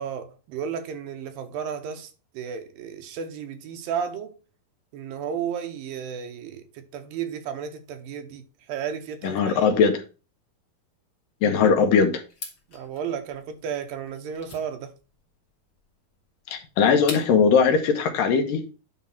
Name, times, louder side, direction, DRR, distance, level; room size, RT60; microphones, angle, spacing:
voice 1, 0.0-4.4 4.9-9.7 12.7-14.9, right 7 dB, 80° right, 2.6 m, -33 dB
voice 2, 9.2-9.9 11.4-12.2 16.5-18.6, left 6 dB, 70° left, 2.6 m, -20 dB
sound 1, 12.3-17.6, left 4 dB, 45° left, 1.3 m, -42 dB
9.7 x 3.6 x 5.8 m
omnidirectional pair, 4.2 m